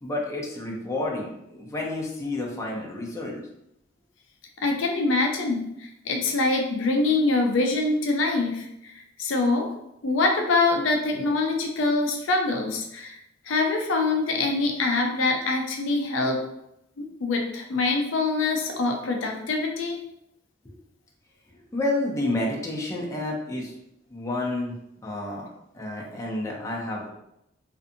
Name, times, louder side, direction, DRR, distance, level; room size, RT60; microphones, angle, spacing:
voice 1, 0.0-3.5 20.6-20.7 21.7-23.7 24.1-24.8 25.0-25.5 25.7-27.1, left 2 dB, 15° left, -3 dB, 0.4 m, -30 dB
voice 2, 4.6-8.7 8.9-9.7 10.0-13.2 13.5-16.4 17.0-20.0, left 3 dB, 70° left, 3 dB, 0.4 m, -24 dB
2.5 x 2.5 x 2.6 m, 0.82 s
head